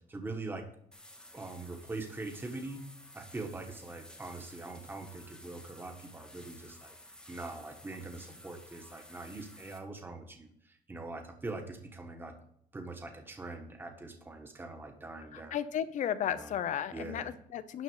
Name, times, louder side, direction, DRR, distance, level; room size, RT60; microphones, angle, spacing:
voice 1, 0.1-0.6 1.3-2.8 3.1-6.9 7.3-12.4 12.7-15.6 16.3-16.5 16.9-17.3, right 2 dB, 15° right, 4 dB, 1.3 m, -43 dB
sound 1, 0.9-9.8, left 1 dB, 5° left, 1.1 m, -54 dB
voice 2, 15.3-17.8, left 9 dB, 60° left, 13 dB, 0.7 m, -34 dB
12.0 x 4.1 x 8.0 m, 0.68 s
cardioid pair, 170°, 14 cm